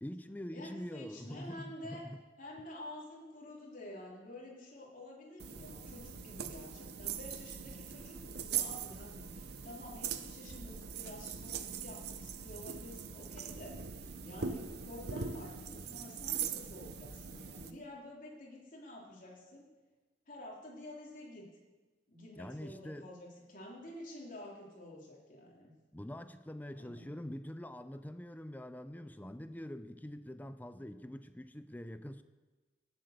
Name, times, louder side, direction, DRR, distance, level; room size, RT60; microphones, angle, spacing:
voice 1, 0.0-2.2 22.4-23.1 25.9-32.2, equal, 10° left, 11 dB, 0.5 m, -45 dB
voice 2, 0.5-2.1 2.4-19.7 20.3-21.6 22.1-25.7 26.7-27.5, left 1 dB, 45° left, -2 dB, 3.5 m, -50 dB
sound 1, 5.4-17.7, right 7 dB, 60° right, 0.7 m, -41 dB
17.5 x 7.9 x 6.6 m, 1.2 s
head